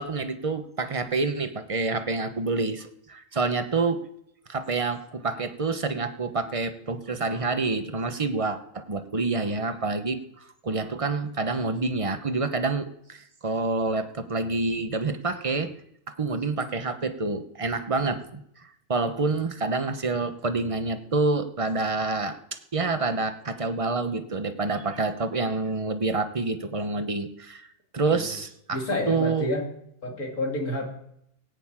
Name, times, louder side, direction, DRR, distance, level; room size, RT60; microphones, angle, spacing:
voice 1, 0.0-4.0 4.5-15.8 16.1-22.4 22.7-27.7 27.9-29.5, right 3 dB, 25° right, 8 dB, 0.8 m, -28 dB
voice 2, 28.7-29.6 30.0-30.9, left 1 dB, 70° left, 1 dB, 3.2 m, -29 dB
18.0 x 6.7 x 8.8 m, 0.75 s
omnidirectional pair, 1.6 m